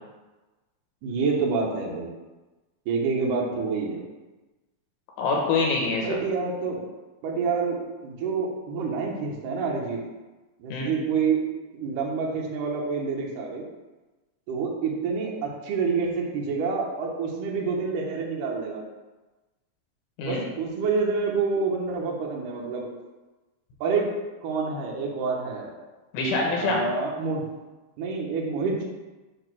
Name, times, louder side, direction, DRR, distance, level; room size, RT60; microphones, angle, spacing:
voice 1, 1.0-2.1 2.9-4.0 6.0-6.8 7.2-7.8 8.0-10.0 10.6-11.4 11.7-13.6 14.5-18.8 20.2-22.9 23.8-24.1 24.4-25.8 26.6-27.4 28.0-28.8, right 5 dB, 90° right, -2 dB, 1.8 m, -27 dB
voice 2, 5.2-6.2 10.7-10.9 20.2-20.4 26.1-26.8, left 3 dB, 80° left, -1 dB, 3.8 m, -25 dB
8.7 x 3.0 x 6.1 m, 1.2 s
omnidirectional pair, 5.4 m